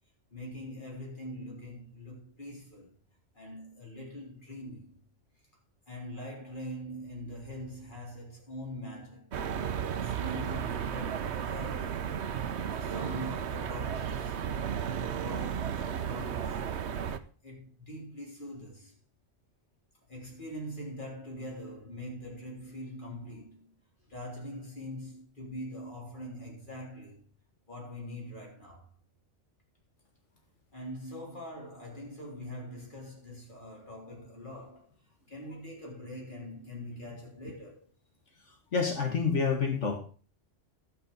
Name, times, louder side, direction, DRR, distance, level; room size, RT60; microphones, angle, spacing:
voice 1, 0.3-2.9 3.3-5.0 5.9-9.3 9.9-12.2 12.6-14.4 14.8-16.6 17.4-19.0 20.1-23.7 24.1-27.2 27.7-28.9 30.7-34.9 35.3-37.9, equal, 40° left, 3.8 m, -43 dB
sound 1, 9.3-17.2, right 8 dB, 65° right, 1.1 m, -34 dB
voice 2, 38.7-40.0, left 5 dB, 75° left, 2.1 m, -28 dB
11.5 x 7.0 x 5.4 m
omnidirectional pair, 1.3 m